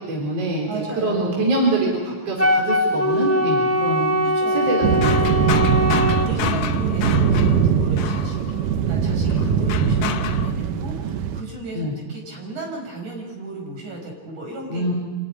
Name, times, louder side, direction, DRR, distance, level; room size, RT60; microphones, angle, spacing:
voice 1, 0.1-4.2 4.5-5.6 11.7-11.9 14.7-14.9, right 2 dB, 50° right, -2 dB, 5.0 m, -24 dB
voice 2, 0.7-1.5 4.2-4.6 5.6-8.6 8.9-14.9, right 2 dB, 65° right, 0 dB, 7.1 m, -35 dB
Wind instrument woodwind instrument, 2.4-6.3, equal, 10° left, 1.0 m, -21 dB
sound 1, 4.7-8.7 9.3-10.5, left 8 dB, 85° left, 2.7 m, -30 dB
sound 2, 4.8-11.4, right 7 dB, 80° right, 2.7 m, -21 dB
26.5 x 15.0 x 9.9 m, 1.3 s
omnidirectional pair, 3.7 m